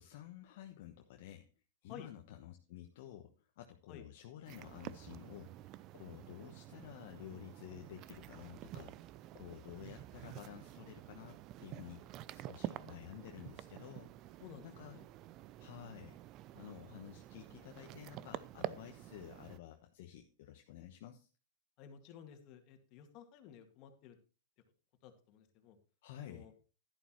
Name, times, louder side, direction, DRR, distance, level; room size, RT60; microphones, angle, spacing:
voice 1, 0.0-1.4 1.8-14.1 14.6-15.0 15.6-16.2 16.5-21.3 26.0-26.5, left 11 dB, 60° left, 4 dB, 1.1 m, -52 dB
sound 1, 4.5-19.6, right 14 dB, 40° right, 0.5 m, -49 dB
voice 2, 12.7-13.1 14.4-15.1 21.8-24.2 25.0-25.8 26.2-26.5, left 8 dB, 45° left, 6 dB, 2.1 m, -54 dB
11.0 x 11.0 x 3.1 m, 0.34 s
hypercardioid pair, 115°, 0 cm